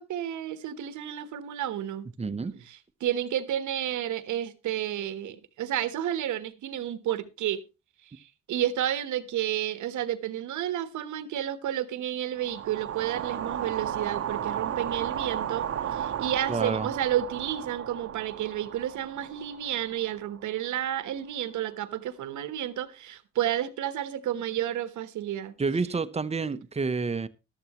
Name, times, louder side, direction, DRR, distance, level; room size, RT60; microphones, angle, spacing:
voice 1, 0.0-2.1 2.4-7.6 8.0-25.5, right 11 dB, 75° right, 1.2 m, -31 dB
voice 2, 2.2-2.6 16.5-16.9 25.6-27.3, right 4 dB, 20° right, 0.8 m, -29 dB
sound 1, 12.4-20.6, right 9 dB, 50° right, 0.9 m, -34 dB
14.0 x 12.0 x 3.0 m
cardioid pair, 90°, 30 cm